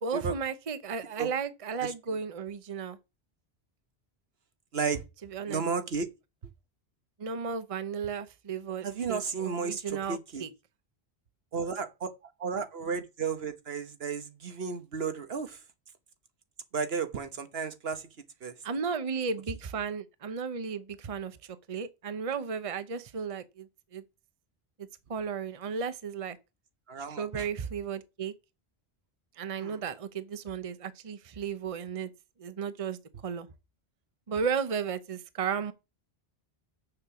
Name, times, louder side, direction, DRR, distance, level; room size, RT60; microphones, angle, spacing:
voice 1, 0.0-3.0 5.3-5.6 7.2-10.5 18.6-21.4 21.7-24.0 25.1-26.4 27.2-28.3 29.4-32.1 32.4-33.0 33.2-33.5 34.3-35.7, right 6 dB, 35° right, 0.8 m, -34 dB
voice 2, 1.8-2.2 4.7-5.0 5.5-6.1 8.8-10.4 11.5-12.1 12.4-15.6 16.7-18.1 18.4-18.5 26.9-27.5 29.6-29.8, right 5 dB, 70° right, 1.3 m, -33 dB
6.8 x 6.6 x 7.0 m
omnidirectional pair, 1.1 m